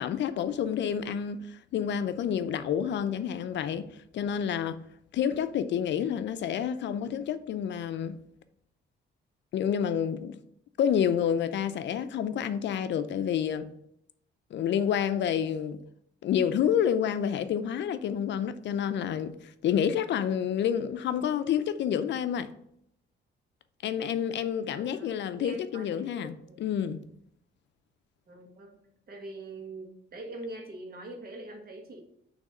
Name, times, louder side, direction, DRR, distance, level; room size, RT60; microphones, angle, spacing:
voice 1, 0.0-3.9 4.1-4.8 5.1-8.2 9.5-10.4 10.8-13.7 14.5-15.8 16.2-22.5 23.8-26.3 26.6-27.0, left 8 dB, 65° left, 0.5 m, -29 dB
voice 2, 24.7-26.7 28.3-28.7 29.1-32.0, right 2 dB, 50° right, 1.7 m, -43 dB
6.2 x 3.2 x 5.4 m
cardioid pair, 90°, 20 cm